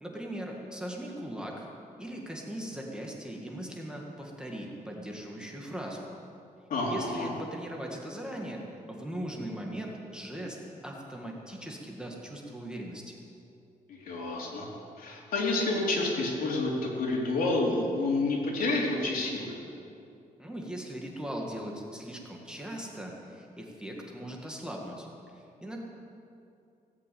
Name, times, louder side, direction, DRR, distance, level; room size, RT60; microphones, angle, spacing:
voice 1, 0.0-1.7 2.0-6.1 6.8-8.6 8.9-10.6 10.8-13.1 20.4-25.1 25.3-25.8, right 1 dB, 5° right, -1 dB, 1.8 m, -39 dB
voice 2, 6.7-7.3 13.9-14.7 15.0-16.7 17.0-19.5, left 2 dB, 75° left, -3 dB, 3.6 m, -29 dB
17.5 x 8.4 x 8.5 m, 2.6 s
wide cardioid pair, 150°, 15 cm